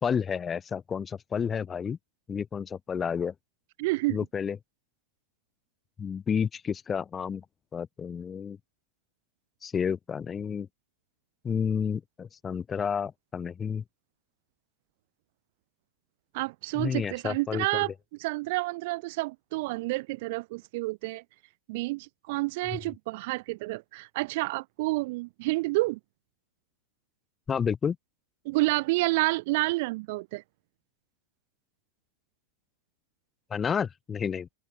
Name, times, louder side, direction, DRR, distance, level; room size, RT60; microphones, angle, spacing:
voice 1, 0.0-2.0 2.3-3.3 4.1-4.6 6.0-7.4 7.7-8.6 9.6-10.7 11.4-13.8 16.8-17.8 22.7-22.8 27.5-28.0 33.5-34.5, left 7 dB, 20° left, 0.6 m, -30 dB
voice 2, 3.8-4.2 16.3-17.9 18.2-21.2 21.7-26.0 28.4-30.4, right 22 dB, 55° right, 0.8 m, -29 dB
hypercardioid pair, 120°, 0 cm